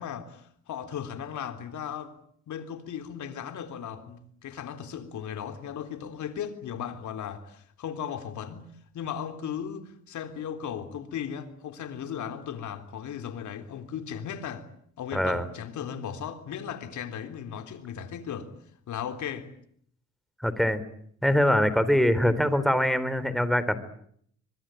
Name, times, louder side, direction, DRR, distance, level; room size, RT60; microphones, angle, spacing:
voice 1, 0.0-2.1 2.5-14.7 15.0-18.5 18.9-19.5, left 8 dB, 75° left, 3.6 m, -36 dB
voice 2, 15.1-15.5 20.4-20.8 21.2-23.8, equal, ahead, 3.5 m, -23 dB
24.0 x 24.0 x 9.0 m
cardioid pair, 90°, 30 cm